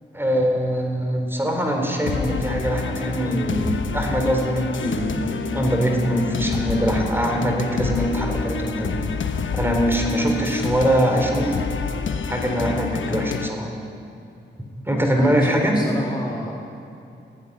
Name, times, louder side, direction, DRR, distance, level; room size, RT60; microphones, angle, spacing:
voice 1, 0.1-5.1 5.5-9.0 9.5-11.5 12.3-13.7 14.9-15.8, equal, 10° right, 2 dB, 4.2 m, -22 dB
sound 1, 2.1-13.5, left 5 dB, 75° left, 1.1 m, -28 dB
voice 2, 15.1-16.5, left 1 dB, 20° left, -1 dB, 2.2 m, -29 dB
19.0 x 15.0 x 9.8 m, 2.6 s
wide cardioid pair, 90°, 20 cm